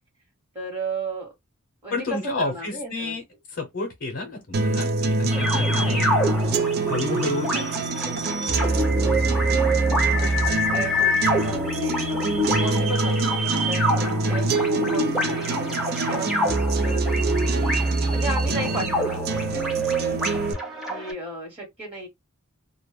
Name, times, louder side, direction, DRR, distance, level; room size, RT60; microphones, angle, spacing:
voice 1, 0.5-1.3 1.8-3.1 4.2-4.4 7.1-7.7 8.4-8.8 9.4-9.5 10.1-10.4 10.7-12.3 12.6-13.4 13.7-17.8 18.1-20.5 20.9-22.1, right 2 dB, 25° right, 1.1 m, -35 dB
voice 2, 1.9-3.2 3.5-6.2 6.8-7.5 8.0-8.1 8.9-9.8, left 3 dB, 55° left, 0.7 m, -31 dB
sound 1, 4.5-20.5, right 3 dB, 45° right, 0.4 m, -25 dB
sound 2, 5.3-21.1, equal, ahead, 0.7 m, -26 dB
2.2 x 2.0 x 3.1 m
head